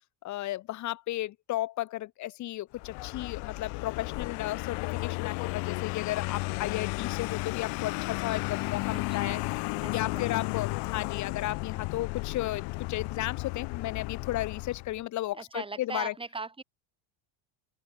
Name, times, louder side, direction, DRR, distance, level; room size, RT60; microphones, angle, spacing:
voice 1, 0.2-9.4 9.9-16.1, left 15 dB, 40° left, 1.1 m, -34 dB
Vehicle, 2.7-15.0, left 27 dB, 65° left, 1.4 m, -34 dB
voice 2, 8.9-9.5 9.8-10.5 15.3-16.6, right 3 dB, 10° right, 7.0 m, -40 dB
open air
cardioid pair, 145°, 44 cm